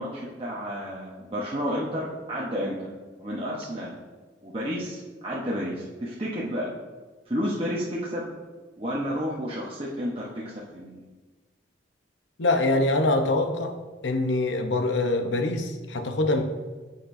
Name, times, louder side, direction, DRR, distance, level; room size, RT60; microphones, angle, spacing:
voice 1, 0.0-2.9 3.2-3.9 4.4-6.7 7.3-8.3 8.8-11.0, equal, 30° right, -6 dB, 1.0 m, -31 dB
voice 2, 12.4-13.7 14.0-16.4, left 2 dB, 75° left, 5 dB, 0.8 m, -24 dB
9.7 x 6.6 x 2.6 m, 1.3 s
head